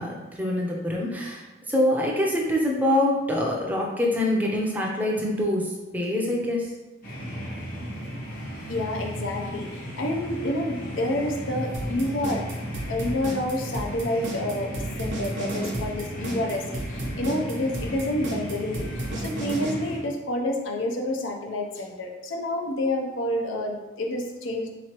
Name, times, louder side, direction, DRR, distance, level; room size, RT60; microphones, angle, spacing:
voice 1, 0.0-6.7, left 1 dB, 10° right, -2 dB, 0.5 m, -25 dB
sound 1, 7.0-20.0, equal, 45° left, 0.8 m, -35 dB
voice 2, 8.7-9.7 10.0-12.4 12.9-24.7, left 1 dB, 80° left, 2 dB, 0.6 m, -28 dB
sound 2, 11.7-19.7, right 2 dB, 70° right, 0.7 m, -33 dB
3.9 x 3.0 x 2.9 m, 1.1 s
head